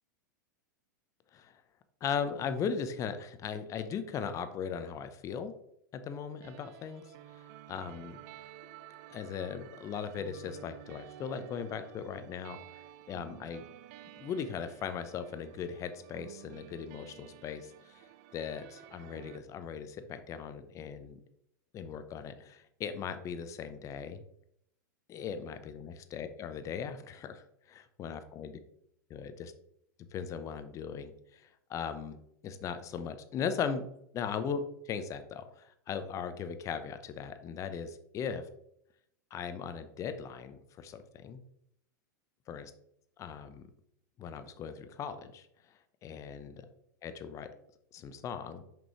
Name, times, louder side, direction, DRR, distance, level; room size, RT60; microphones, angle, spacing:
voice 1, 2.0-5.5 5.9-8.2 9.1-13.6 14.2-21.2 21.7-24.2 25.1-28.6 29.1-29.5 30.1-33.9 34.1-38.4 39.3-41.4 42.5-42.7 43.2-43.6 44.2-45.5 46.0-46.6 47.0-47.5 47.9-48.6, left 7 dB, 30° left, 10 dB, 0.7 m, -38 dB
sound 1, 6.4-19.4, right 12 dB, 50° right, 0.4 m, -52 dB
6.2 x 5.2 x 3.0 m, 0.74 s
hypercardioid pair, 100°, 10 cm